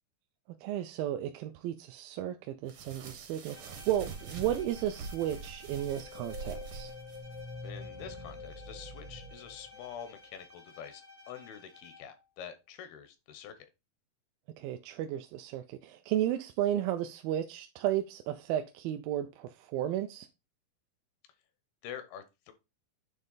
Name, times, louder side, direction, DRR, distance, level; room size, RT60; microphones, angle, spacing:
voice 1, 0.6-6.9 14.6-20.3, right 12 dB, 80° right, 2.2 m, -33 dB
sound 1, 2.7-7.4, right 5 dB, 60° right, 1.6 m, -44 dB
Bowed string instrument, 3.5-12.3, left 2 dB, 55° left, 0.7 m, -55 dB
sound 2, 5.8-10.4, left 3 dB, 30° right, 0.7 m, -46 dB
voice 2, 7.6-13.7 21.8-22.5, left 8 dB, 85° left, 2.9 m, -46 dB
9.2 x 3.2 x 3.9 m
omnidirectional pair, 4.3 m